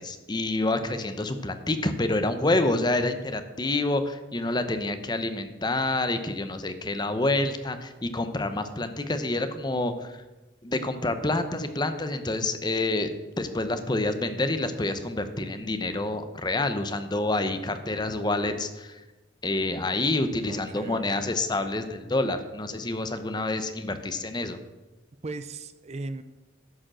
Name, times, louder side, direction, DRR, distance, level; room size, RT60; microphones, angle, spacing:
voice 1, 0.0-10.2 10.6-13.1 13.4-19.0 19.4-24.6, left 2 dB, 20° left, 9 dB, 0.7 m, -28 dB
voice 2, 20.5-21.4 25.2-26.2, right 2 dB, 35° right, 11 dB, 0.4 m, -37 dB
11.0 x 5.0 x 7.5 m, 1.1 s
head